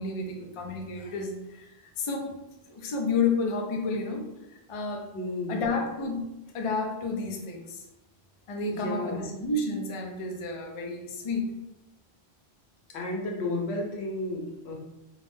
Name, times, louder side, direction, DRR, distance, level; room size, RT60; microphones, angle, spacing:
voice 1, 0.0-2.4 2.7-4.3 4.7-5.0 5.5-6.3 6.5-7.8 8.5-11.5, left 3 dB, 55° left, 1 dB, 0.3 m, -31 dB
voice 2, 5.1-5.6 8.7-9.3 12.9-14.7, left 2 dB, 85° left, -1 dB, 0.9 m, -32 dB
2.3 x 2.1 x 3.1 m, 0.93 s
omnidirectional pair, 1.1 m